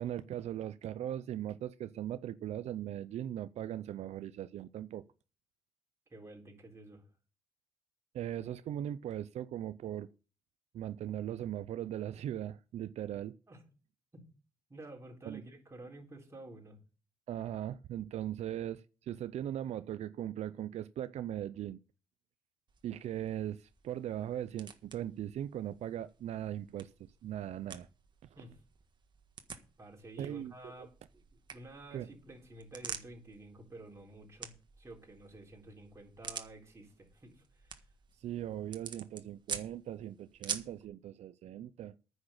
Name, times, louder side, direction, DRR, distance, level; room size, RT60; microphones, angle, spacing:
voice 1, 0.0-5.0 8.1-10.1 10.7-13.4 15.2-15.4 17.3-21.8 22.8-27.9 30.2-30.9 31.9-32.1 38.2-41.9, right 11 dB, 85° right, 0.5 m, -39 dB
voice 2, 6.1-7.0 13.5-13.6 14.1-14.3 14.7-16.8 28.3-28.6 29.8-31.2 31.5-37.9, right 2 dB, 25° right, 4.0 m, -51 dB
sound 1, 22.7-40.8, right 6 dB, 45° right, 1.5 m, -48 dB
9.8 x 6.3 x 8.8 m
cardioid pair, 120°, 11 cm